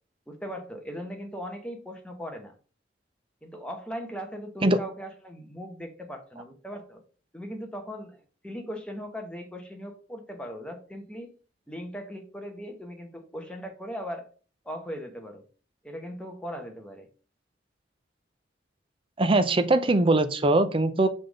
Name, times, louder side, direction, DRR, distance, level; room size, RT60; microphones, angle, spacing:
voice 1, 0.3-2.5 3.4-7.0 7.3-8.2 8.4-11.3 11.7-14.2 14.6-15.4 15.8-17.1, equal, 5° left, 3 dB, 1.1 m, -38 dB
voice 2, 19.2-21.1, right 2 dB, 30° right, 11 dB, 0.5 m, -21 dB
5.8 x 3.5 x 5.2 m, 0.39 s
head